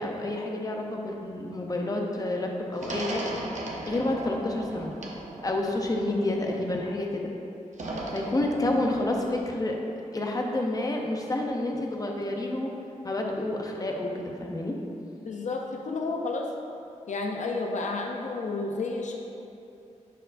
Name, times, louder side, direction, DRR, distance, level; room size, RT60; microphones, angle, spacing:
voice 1, 0.0-3.2 3.8-4.9 5.4-7.3 8.1-9.7 10.1-12.7 13.0-14.8, left 1 dB, 30° left, 1 dB, 0.6 m, -29 dB
sound 1, 2.8-6.9 7.7-9.4, right 2 dB, 70° right, 0.8 m, -37 dB
voice 2, 15.2-16.5 17.1-19.2, left 3 dB, 70° left, 1 dB, 0.6 m, -31 dB
9.9 x 4.5 x 2.6 m, 2.7 s
wide cardioid pair, 145°, 13 cm